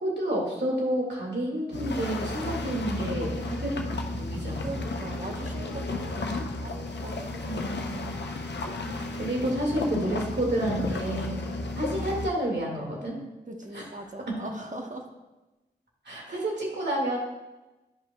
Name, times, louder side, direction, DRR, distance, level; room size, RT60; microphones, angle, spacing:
voice 1, 0.0-3.7 4.1-5.0 7.4-8.1 9.2-11.4 11.8-13.2 13.7-13.8 14.3-14.4 16.0-17.2, right 1 dB, 90° right, -3 dB, 2.0 m, -30 dB
sound 1, 1.7-12.3, left 2 dB, 85° left, 0.6 m, -33 dB
voice 2, 4.5-7.8 8.8-9.8 13.5-15.1 16.3-16.4, right 2 dB, 45° right, 2 dB, 1.1 m, -41 dB
11.0 x 5.3 x 2.2 m, 1.0 s
wide cardioid pair, 50°, 17 cm